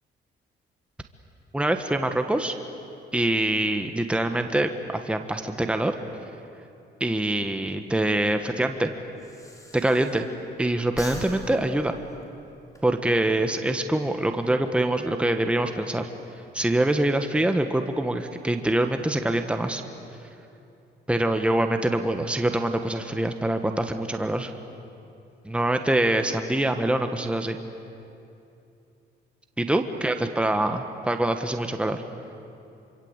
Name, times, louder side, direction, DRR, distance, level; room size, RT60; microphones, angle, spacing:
voice 1, 1.5-2.5 3.1-5.9 7.0-8.9 9.7-10.3 10.6-12.0 12.8-16.1 16.5-19.8 21.1-24.5 25.4-27.6 29.6-32.0, right 1 dB, 5° right, 6 dB, 1.4 m, -24 dB
Breathing, 7.8-10.5 10.8-12.8, left 1 dB, 15° left, 4.3 m, -43 dB
26.0 x 25.0 x 8.2 m, 2.7 s
cardioid pair, 90°, 20 cm